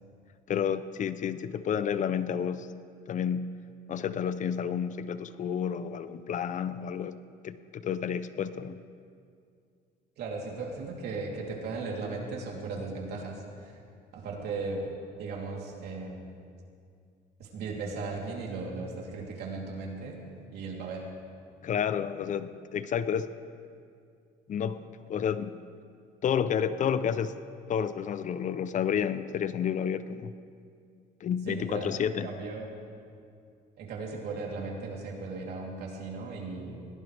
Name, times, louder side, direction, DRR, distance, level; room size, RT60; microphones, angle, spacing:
voice 1, 0.5-2.7 3.1-3.5 3.9-7.2 7.4-8.8 21.6-23.3 24.5-24.8 25.1-25.6 26.2-27.3 27.7-30.3 31.2-32.3, left 8 dB, 45° left, 13 dB, 0.7 m, -30 dB
voice 2, 10.2-13.8 14.1-14.9 15.2-16.4 17.4-20.2 20.5-21.1 31.5-31.9 32.2-32.7 33.8-36.9, right 3 dB, 75° right, -2 dB, 3.4 m, -37 dB
22.0 x 18.0 x 3.5 m, 2.3 s
cardioid pair, 110°, 17 cm